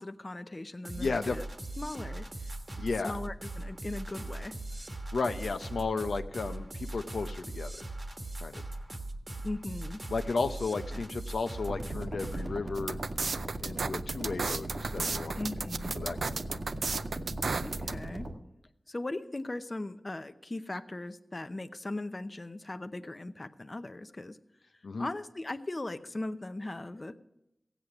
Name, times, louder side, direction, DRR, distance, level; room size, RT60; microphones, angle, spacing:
voice 1, 0.0-1.4 1.8-4.5 9.4-10.0 10.9-11.0 15.4-15.9 17.6-18.3 18.9-24.4 25.0-27.2, left 2 dB, 40° left, 10 dB, 0.7 m, -39 dB
sound 1, 0.8-12.6, right 2 dB, 40° right, 1.3 m, -40 dB
voice 2, 1.0-1.4 2.8-3.2 5.1-7.9 8.4-8.6 10.1-13.0 13.6-15.5 15.9-16.6 24.8-25.1, left 4 dB, 90° left, 7 dB, 0.6 m, -34 dB
sound 2, 11.7-18.4, right 1 dB, 70° right, 1.6 m, -38 dB
sound 3, 12.7-17.9, right 4 dB, 85° right, 0.4 m, -33 dB
15.5 x 8.2 x 6.0 m, 0.84 s
cardioid pair, 50°, 0 cm